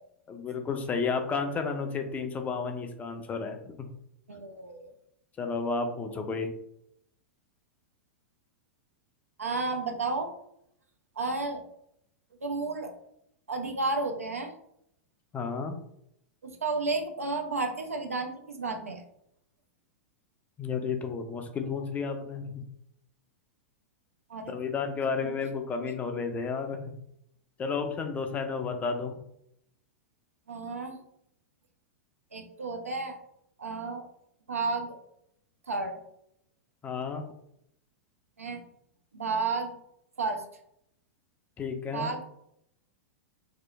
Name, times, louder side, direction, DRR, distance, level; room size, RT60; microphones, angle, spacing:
voice 1, 0.3-3.9 5.4-6.5 15.3-15.8 20.6-22.6 24.5-26.8 27.6-29.2 36.8-37.2 41.6-42.1, left 5 dB, 20° left, 5 dB, 0.3 m, -32 dB
voice 2, 4.3-4.9 9.4-10.3 11.2-11.6 12.4-12.9 13.5-14.5 16.4-19.0 24.3-24.6 25.1-25.3 26.1-26.2 30.5-31.0 32.3-33.2 33.6-34.1 34.5-35.0 35.7-36.0 38.4-38.6 39.1-39.8 40.2-40.4 41.9-42.2, right 3 dB, 80° right, 4 dB, 0.4 m, -32 dB
2.7 x 2.3 x 2.3 m, 0.75 s
figure-of-eight pair, 95°, 8 cm